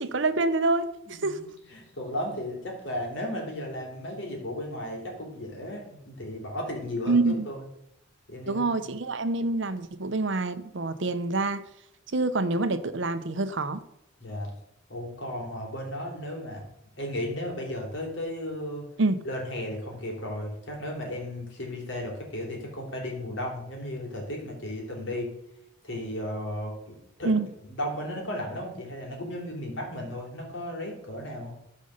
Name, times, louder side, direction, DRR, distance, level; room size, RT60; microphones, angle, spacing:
voice 1, 0.0-1.4 7.1-7.5 8.5-11.6 12.1-13.8 19.0-19.2 27.2-27.5, right 3 dB, 60° right, 0.7 m, -26 dB
voice 2, 1.1-7.7 8.3-8.9 14.2-14.5 14.9-16.7 17.0-18.9 19.2-25.3 25.8-27.4 27.6-31.5, left 1 dB, 60° left, 3.5 m, -35 dB
13.5 x 5.3 x 6.5 m
head